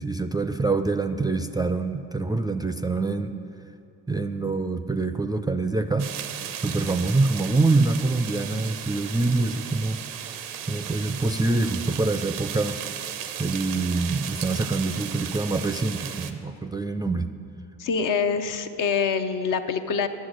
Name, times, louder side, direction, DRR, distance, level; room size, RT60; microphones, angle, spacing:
voice 1, 0.0-3.3 4.1-6.1 6.6-10.0 10.7-12.8 13.4-17.3, right 3 dB, 10° right, 9 dB, 0.4 m, -25 dB
sound 1, 6.0-16.3, right 9 dB, 85° right, 0.6 m, -35 dB
voice 2, 17.8-20.1, left 5 dB, 55° left, 8 dB, 0.7 m, -25 dB
10.5 x 7.2 x 6.5 m, 2.6 s
hypercardioid pair, 50°, 38 cm